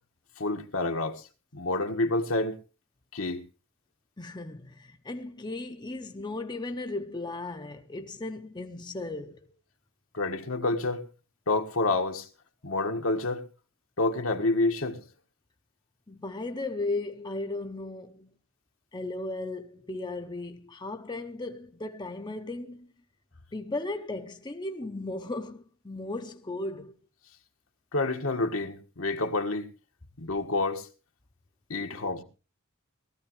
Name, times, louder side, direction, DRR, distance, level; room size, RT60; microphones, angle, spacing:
voice 1, 0.4-1.2 1.5-2.6 3.1-3.5 10.1-11.1 11.5-12.3 12.6-13.4 14.0-15.0 27.9-29.7 30.2-30.9 31.7-32.2, left 2 dB, 75° left, 1.6 m, -28 dB
voice 2, 4.2-9.5 16.1-18.3 18.9-22.9 23.5-27.0 31.9-32.1, left 2 dB, 20° left, 0.7 m, -36 dB
19.0 x 13.5 x 3.1 m
head